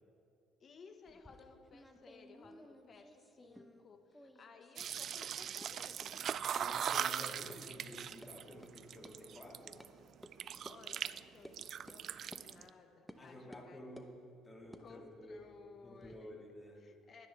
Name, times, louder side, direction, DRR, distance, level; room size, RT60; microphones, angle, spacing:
voice 1, 0.6-7.0 10.4-11.5 11.8-13.9 14.8-16.4 16.8-17.3, left 5 dB, 45° left, 6 dB, 1.4 m, -59 dB
sound 1, 1.0-3.9 4.1-4.9 5.2-5.3 5.6-5.7 6.0-6.1 6.7-6.8 7.1-7.2 7.5-7.6 7.9-8.3 8.6-8.7 9.0-9.1 9.8-9.9 10.2-10.3 10.6-10.8 11.4-11.6 11.9-12.0 12.3-12.4 13.1-13.2 13.5-14.1 14.6-16.2, equal, ahead, 1.0 m, -56 dB
sound 2, 4.8-9.9 10.2-11.2 11.5-12.7, right 9 dB, 55° right, 0.3 m, -40 dB
voice 2, 6.5-9.8 13.2-14.2 14.4-15.5 15.8-16.8, left 1 dB, 20° left, -1 dB, 2.6 m, -51 dB
21.5 x 10.0 x 3.4 m, 2.5 s
supercardioid pair, 85°, 0 cm